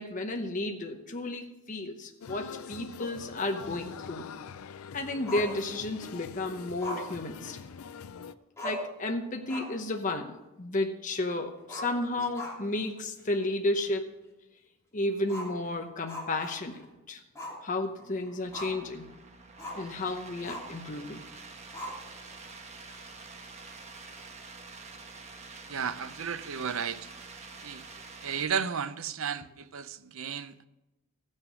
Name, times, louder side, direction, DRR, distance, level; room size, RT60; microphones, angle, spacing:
voice 1, 0.0-4.3 4.9-7.6 8.6-14.1 14.9-16.8 17.1-17.2 17.6-19.1 19.8-21.2, left 2 dB, 35° left, 0.8 m, -32 dB
sound 1, 2.2-8.3, left 6 dB, 80° left, 0.4 m, -44 dB
Growling, 5.3-6.1 6.8-8.0 8.3-8.4 8.6-9.0 9.4-9.9 10.2-10.3 11.6-12.8 13.2-13.3 13.8-13.9 15.2-16.9 17.3-17.6 18.0-18.9 19.6-19.9 20.4-20.8 21.7-22.3, left 1 dB, 15° left, 2.9 m, -40 dB
sound 2, 18.5-28.4, right 4 dB, 30° right, 1.1 m, -47 dB
voice 2, 25.7-27.0 27.6-27.8 28.2-30.6, right 7 dB, 70° right, 0.6 m, -33 dB
15.5 x 6.5 x 6.2 m
head